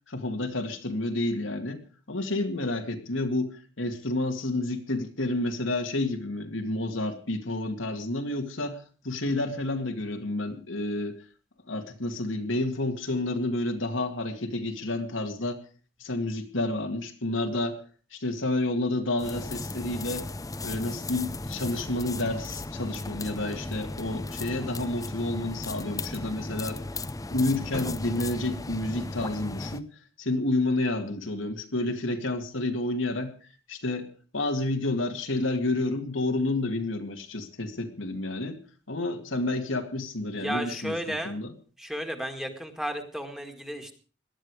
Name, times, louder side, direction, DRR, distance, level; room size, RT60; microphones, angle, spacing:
voice 1, 0.1-1.8 2.1-11.2 11.7-15.6 16.0-17.8 18.1-20.2 20.6-26.8 27.3-29.9 30.2-33.3 33.7-34.1 34.3-38.6 38.9-41.0 41.2-41.5, left 2 dB, 85° left, 5 dB, 2.2 m, -30 dB
sound 1, 19.2-29.8, left 2 dB, 20° left, 0.7 m, -36 dB
voice 2, 40.3-41.4 41.8-43.9, equal, ahead, 5 dB, 1.9 m, -33 dB
18.0 x 12.5 x 4.8 m, 0.37 s
head